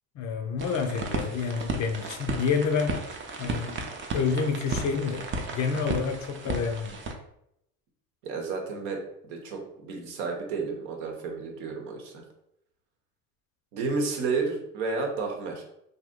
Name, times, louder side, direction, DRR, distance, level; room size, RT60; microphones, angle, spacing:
voice 1, 0.2-3.0 3.4-3.8 4.1-5.2 5.5-7.0, left 5 dB, 40° left, 6 dB, 0.4 m, -28 dB
sound 1, 0.6-7.1, right 3 dB, 25° right, 0.4 m, -34 dB
voice 2, 8.2-12.2 13.7-15.6, right 4 dB, 75° right, 2 dB, 0.9 m, -31 dB
2.7 x 2.1 x 3.5 m, 0.76 s
hypercardioid pair, 85°, 45 cm